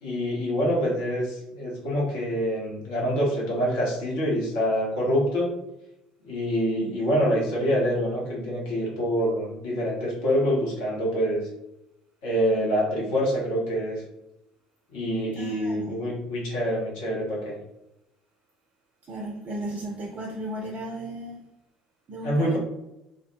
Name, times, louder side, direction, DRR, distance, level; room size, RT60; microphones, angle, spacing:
voice 1, 0.0-5.5 6.3-11.5 12.2-14.0 14.9-17.5 22.2-22.6, equal, 60° left, -4 dB, 0.8 m, -26 dB
voice 2, 15.4-16.0 19.1-21.4 22.1-22.6, right 1 dB, 40° right, -1 dB, 0.4 m, -35 dB
2.1 x 2.1 x 3.0 m, 0.88 s
figure-of-eight pair, 60°, 4 cm